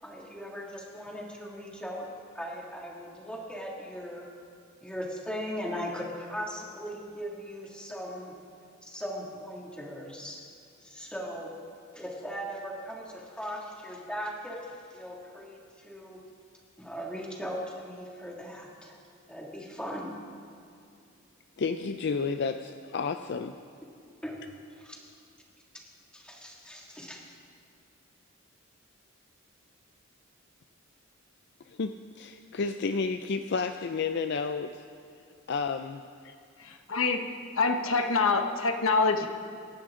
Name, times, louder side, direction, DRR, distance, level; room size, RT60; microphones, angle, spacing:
voice 1, 0.0-2.1 2.3-4.3 4.8-8.3 8.8-10.4 10.8-11.5 11.9-16.2 16.8-19.0 19.3-20.1 24.2-24.4 24.8-24.9 25.7-25.8 26.1-27.2, equal, 5° left, -3 dB, 2.3 m, -39 dB
voice 2, 21.6-23.6 31.7-34.8 35.5-36.4, left 4 dB, 55° left, 8 dB, 0.4 m, -31 dB
voice 3, 36.6-37.3 37.5-39.3, left 4 dB, 85° left, 5 dB, 1.1 m, -26 dB
25.5 x 11.5 x 3.8 m, 2.4 s
head